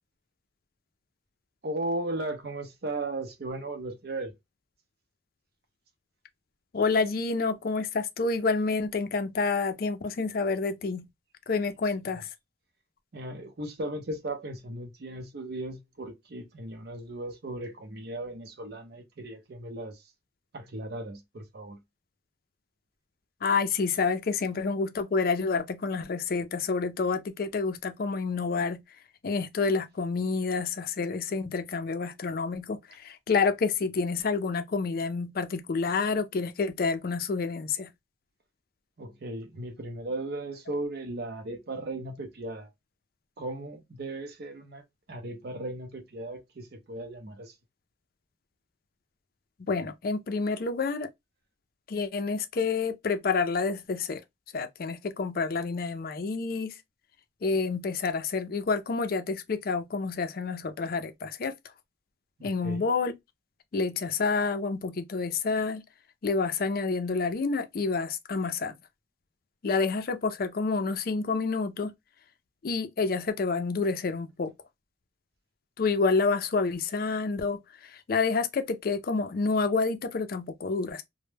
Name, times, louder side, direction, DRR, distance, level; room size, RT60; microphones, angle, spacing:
voice 1, 1.6-4.3 13.1-20.0 20.5-21.8 39.0-42.7 43.4-44.8 45.1-47.5 62.4-62.9, right 2 dB, 55° right, 0.5 m, -36 dB
voice 2, 6.7-11.1 11.5-12.3 23.4-28.8 29.2-37.9 49.6-51.1 51.9-54.2 54.5-56.7 57.4-61.5 62.4-63.1 63.7-65.8 66.2-68.7 69.6-71.9 72.6-74.5 75.8-81.0, left 4 dB, 50° left, 0.4 m, -28 dB
2.1 x 2.0 x 3.1 m
head